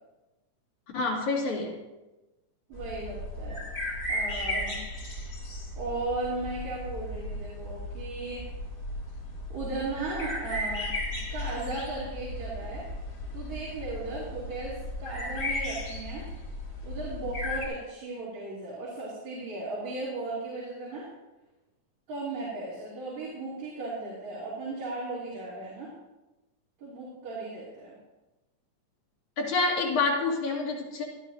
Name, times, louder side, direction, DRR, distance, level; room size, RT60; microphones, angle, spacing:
voice 1, 0.9-1.8 29.4-31.0, left 3 dB, 70° left, -3 dB, 3.7 m, -27 dB
sound 1, 2.7-17.7, left 1 dB, 30° left, 2.1 m, -35 dB
voice 2, 2.7-3.6 4.1-4.8 5.8-8.4 9.5-11.0 11.3-12.9 13.3-16.3 16.8-21.1 22.1-25.9 26.8-28.0, right 2 dB, 65° right, -9 dB, 4.2 m, -36 dB
18.5 x 12.0 x 2.7 m, 1.1 s
omnidirectional pair, 3.5 m